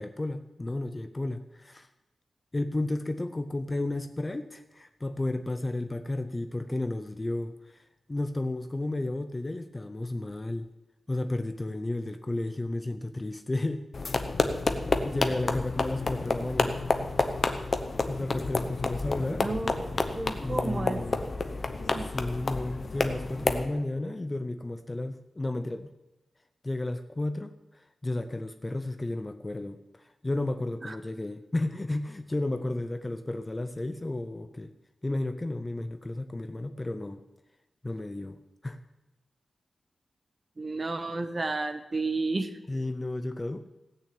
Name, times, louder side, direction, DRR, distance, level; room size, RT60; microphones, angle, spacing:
voice 1, 0.0-1.9 2.5-7.8 8.1-10.7 11.1-13.9 14.8-16.8 18.1-19.5 20.4-21.2 22.0-25.9 26.6-27.5 28.0-34.7 35.0-37.2 37.8-38.4 38.6-38.8 42.7-43.7, left 2 dB, 20° left, 9 dB, 0.6 m, -32 dB
sound 1, 13.9-23.7, left 3 dB, 40° left, 1.0 m, -29 dB
voice 2, 19.4-19.9 20.1-21.0 21.8-22.1 30.9-31.0 40.6-42.5, right 3 dB, 25° right, 8 dB, 1.0 m, -32 dB
17.0 x 6.4 x 8.5 m, 1.0 s
wide cardioid pair, 160°, 0 cm